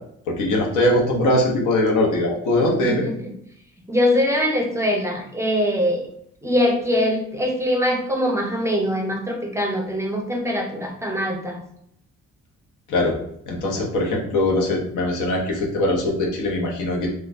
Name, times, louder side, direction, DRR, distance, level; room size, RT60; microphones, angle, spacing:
voice 1, 0.3-3.0 12.9-13.2 13.5-17.1, left 1 dB, 80° left, -1 dB, 0.9 m, -21 dB
voice 2, 2.6-3.3 3.9-6.1 6.4-11.6, left 1 dB, 10° right, 1 dB, 0.5 m, -23 dB
3.1 x 2.3 x 2.5 m, 0.72 s
cardioid pair, 90°, 30 cm